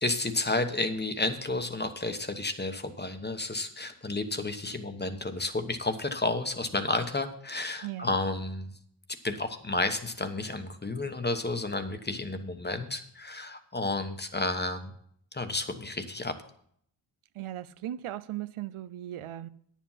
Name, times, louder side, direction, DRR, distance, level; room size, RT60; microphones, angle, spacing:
voice 1, 0.0-8.7 9.2-14.9 15.3-16.3, left 2 dB, 20° left, 1.0 m, -31 dB
voice 2, 7.8-8.2 17.3-19.5, right 13 dB, 85° right, 0.6 m, -37 dB
10.0 x 7.3 x 5.6 m
wide cardioid pair, 90°, 49 cm